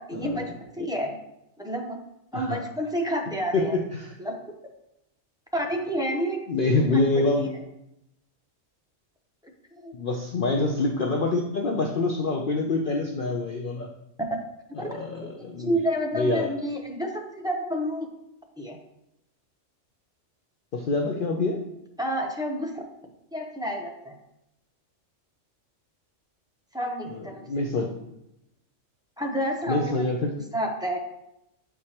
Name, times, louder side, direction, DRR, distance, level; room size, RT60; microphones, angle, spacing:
voice 1, 0.1-1.2 1.6-2.0 2.3-3.7 4.2-4.4 5.5-7.5 9.7-9.9 10.6-10.7 14.8-14.9 15.3-18.1 18.6-18.8 22.0-22.8 23.3-24.2 26.7-27.7 29.2-30.2 30.5-31.0, equal, 5° right, 0 dB, 0.5 m, -30 dB
voice 2, 6.5-7.5 9.9-13.9 14.8-15.7 16.1-16.5 20.7-21.6 27.4-27.9 29.7-30.3, left 2 dB, 55° left, 1 dB, 0.6 m, -26 dB
7.8 x 4.8 x 2.9 m, 0.86 s
omnidirectional pair, 1.3 m